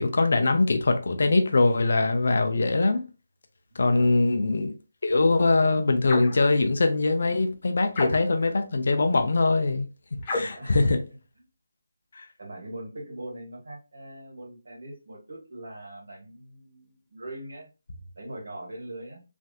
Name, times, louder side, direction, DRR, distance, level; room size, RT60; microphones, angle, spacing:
voice 1, 0.0-3.0 3.8-4.7 5.0-9.9 10.3-11.0 12.2-12.3, left 3 dB, 55° left, 0.5 m, -22 dB
voice 2, 3.7-4.4 10.5-10.8 12.4-17.7 18.1-19.2, right 1 dB, 65° right, 1.8 m, -41 dB
sound 1, 6.1-6.4 7.9-8.5 10.2-10.7, left 2 dB, 20° left, 0.7 m, -31 dB
3.3 x 2.7 x 2.3 m
figure-of-eight pair, 170°, 0 cm